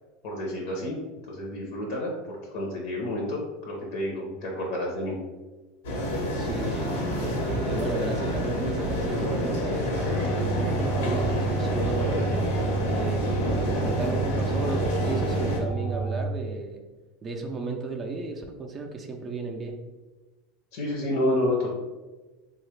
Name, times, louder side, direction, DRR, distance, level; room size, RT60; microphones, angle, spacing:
voice 1, 0.2-1.0 1.3-5.2 20.7-21.7, left 1 dB, 70° left, -1 dB, 0.7 m, -29 dB
sound 1, 5.8-15.6, equal, 90° left, 1.0 m, -28 dB
voice 2, 6.4-12.2 12.8-13.5 13.8-16.8 17.2-19.8, right 3 dB, 25° right, 2 dB, 0.4 m, -34 dB
sound 2, 6.5-10.7, right 1 dB, 80° right, 0.5 m, -42 dB
sound 3, 10.0-16.3, right 4 dB, 40° left, 0.4 m, -30 dB
3.5 x 2.3 x 3.2 m, 1.2 s
supercardioid pair, 145°, 0 cm